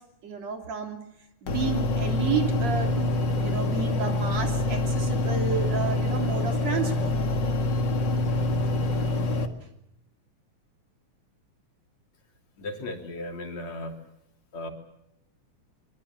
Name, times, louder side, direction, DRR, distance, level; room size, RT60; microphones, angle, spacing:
voice 1, 0.2-1.0 1.4-7.1, right 6 dB, 55° right, 4 dB, 4.2 m, -31 dB
sound 1, 1.5-9.5, left 2 dB, 40° left, 2.0 m, -26 dB
voice 2, 12.6-14.0 14.5-14.7, left 1 dB, 60° left, 3 dB, 4.3 m, -36 dB
24.5 x 24.5 x 7.3 m, 0.81 s
omnidirectional pair, 3.6 m